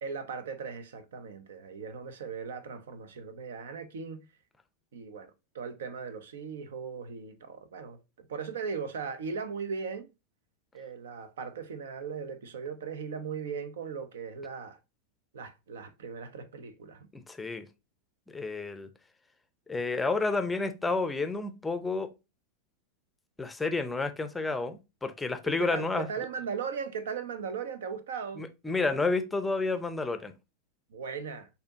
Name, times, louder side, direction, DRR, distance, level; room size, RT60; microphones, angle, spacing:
voice 1, 0.0-4.2 4.9-10.1 10.7-14.8 15.3-17.1 25.4-28.4 30.9-31.5, right 6 dB, 60° right, 0.6 m, -38 dB
voice 2, 17.1-17.7 18.3-18.9 19.7-22.1 23.4-26.1 28.4-30.3, left 3 dB, 10° left, 0.6 m, -30 dB
6.4 x 2.7 x 2.8 m
figure-of-eight pair, 90°, 0 cm